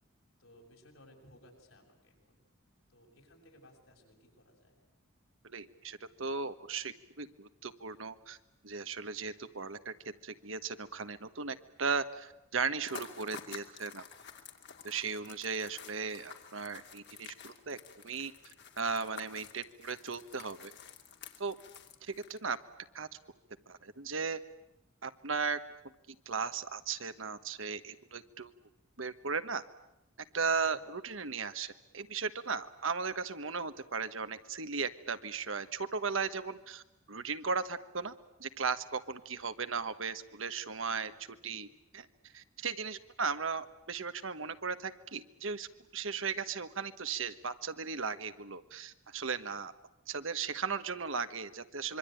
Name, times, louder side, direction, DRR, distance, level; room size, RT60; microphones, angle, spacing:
voice 1, 0.4-2.4 2.9-4.8 30.5-30.8, left 1 dB, 75° left, 0 dB, 7.3 m, -60 dB
voice 2, 5.4-8.4 8.6-14.0 14.8-17.8 18.0-18.3 18.8-20.7 21.4-21.5 22.0-22.6 22.9-23.1 23.7-24.4 25.0-25.6 26.2-28.5 29.0-29.6 30.3-36.8 37.1-38.1 38.4-41.7 41.9-42.1 42.3-49.7 50.1-52.0, right 5 dB, 70° right, 11 dB, 1.4 m, -36 dB
sound 1, 12.8-22.6, left 6 dB, 60° left, 2.6 m, -50 dB
26.0 x 23.5 x 9.2 m, 0.86 s
head